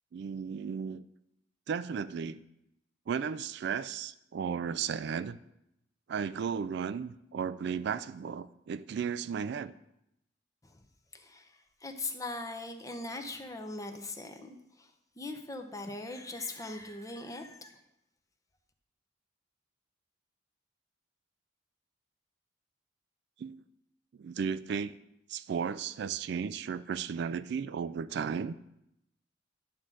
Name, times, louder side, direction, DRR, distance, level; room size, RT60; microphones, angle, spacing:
voice 1, 0.1-1.0 1.7-2.4 3.1-5.4 6.1-9.7 23.4-23.6 24.2-24.9 25.3-28.5, right 6 dB, 60° right, 14 dB, 0.3 m, -34 dB
voice 2, 11.1-17.8, left 2 dB, 15° left, 5 dB, 0.8 m, -41 dB
11.5 x 3.8 x 7.5 m, 0.84 s
head